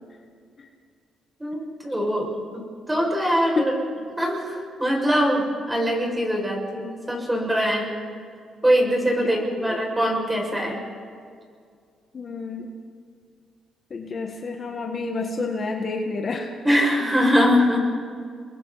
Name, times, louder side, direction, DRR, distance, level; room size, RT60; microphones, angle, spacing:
voice 1, 1.4-3.7 4.2-7.9 8.6-10.8 16.6-17.9, equal, 10° right, 0 dB, 6.2 m, -22 dB
voice 2, 9.2-9.8 12.1-12.7 13.9-16.5, left 3 dB, 45° left, 2 dB, 1.7 m, -29 dB
29.0 x 22.5 x 4.2 m, 2.2 s
cardioid pair, 90°, 0 cm